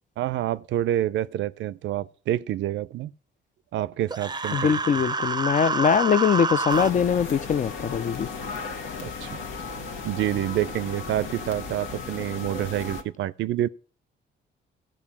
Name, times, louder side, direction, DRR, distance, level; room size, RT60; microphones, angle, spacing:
voice 1, 0.2-3.1 3.7-4.7 9.0-9.4 10.0-13.7, right 13 dB, 70° right, 0.5 m, -28 dB
Human voice, 4.1-6.9, right 3 dB, 20° right, 0.6 m, -27 dB
voice 2, 4.5-8.3, left 7 dB, 40° left, 0.4 m, -22 dB
sound 1, 6.7-13.0, left 5 dB, 80° left, 1.5 m, -35 dB
14.5 x 5.2 x 7.1 m
cardioid pair, 90°, 20 cm